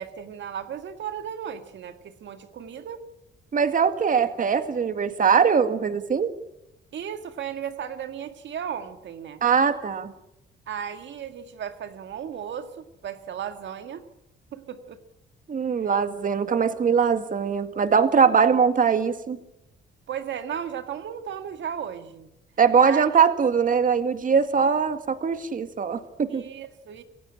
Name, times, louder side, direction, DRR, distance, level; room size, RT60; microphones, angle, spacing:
voice 1, 0.0-3.0 6.9-9.4 10.7-14.0 14.5-15.0 15.8-15.9 20.1-22.3 22.8-23.0 26.3-27.0, right 8 dB, 65° right, 8 dB, 1.8 m, -35 dB
voice 2, 3.5-6.3 9.4-10.1 15.5-19.4 22.6-26.5, right 6 dB, 45° right, 9 dB, 2.0 m, -21 dB
27.5 x 16.0 x 8.8 m, 0.88 s
cardioid pair, 90°, 20 cm